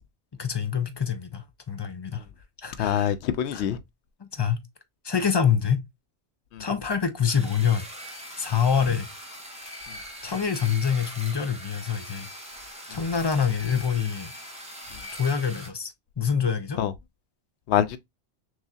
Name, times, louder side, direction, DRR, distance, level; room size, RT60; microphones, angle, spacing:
voice 1, 0.4-2.2 2.6-3.1 3.5-3.6 4.2-4.6 5.0-5.8 6.6-7.8 8.4-9.1 10.2-12.3 12.9-14.3 15.1-16.8, left 7 dB, 35° left, 0.4 m, -26 dB
voice 2, 2.8-3.8 6.5-6.6 16.8-16.9 17.7-18.0, left 10 dB, 80° left, 0.9 m, -24 dB
sound 1, 7.3-15.7, equal, 5° right, 1.0 m, -41 dB
6.0 x 2.7 x 2.3 m
omnidirectional pair, 1.1 m